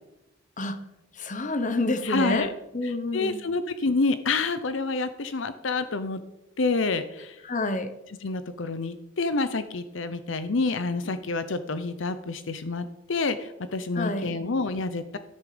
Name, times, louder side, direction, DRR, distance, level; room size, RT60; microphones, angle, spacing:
voice 1, 1.2-3.4 7.4-7.9 13.9-14.3, left 2 dB, 40° left, 10 dB, 1.1 m, -28 dB
voice 2, 2.0-2.5 2.8-6.2 6.6-7.4 8.2-15.2, left 3 dB, 70° left, 12 dB, 0.7 m, -28 dB
13.5 x 11.0 x 5.1 m, 0.93 s
head